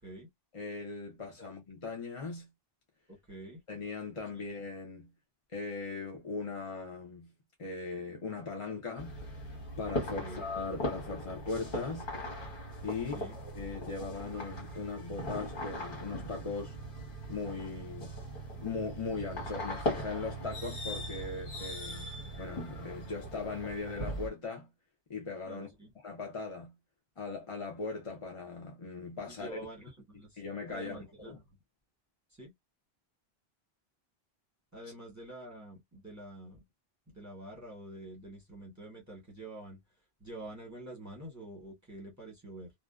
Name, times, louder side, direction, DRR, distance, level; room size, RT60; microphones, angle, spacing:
voice 1, 0.5-2.5 3.7-5.1 5.5-7.3 7.6-9.4 9.8-12.1 12.8-16.8 17.3-18.2 18.6-24.7 25.1-25.7 26.0-26.7 27.2-29.6 30.4-31.4, left 4 dB, 35° left, 0.6 m, -39 dB
voice 2, 3.1-3.6 4.3-4.4 10.2-10.5 13.1-13.3 25.5-25.9 29.3-30.4 30.7-31.4 32.3-32.5 34.7-36.6 37.1-39.8 40.2-42.7, right 1 dB, 20° right, 1.0 m, -47 dB
sound 1, 9.0-24.3, equal, 55° left, 1.3 m, -39 dB
2.6 x 2.1 x 2.3 m
omnidirectional pair, 1.1 m